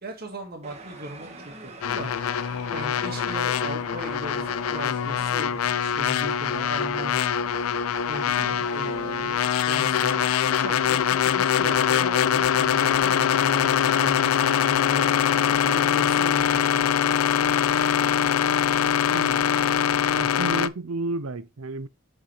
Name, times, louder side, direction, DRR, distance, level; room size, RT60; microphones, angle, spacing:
voice 1, 0.0-2.1 2.4-7.5 8.1-15.1 15.7-16.9, right 1 dB, 50° right, 1.9 m, -38 dB
sound 1, 0.6-16.2, right 2 dB, 30° right, 1.5 m, -46 dB
sound 2, 1.8-20.7, left 8 dB, 85° left, 0.4 m, -23 dB
voice 2, 20.2-21.9, right 3 dB, 90° right, 0.7 m, -31 dB
8.1 x 5.4 x 3.3 m
head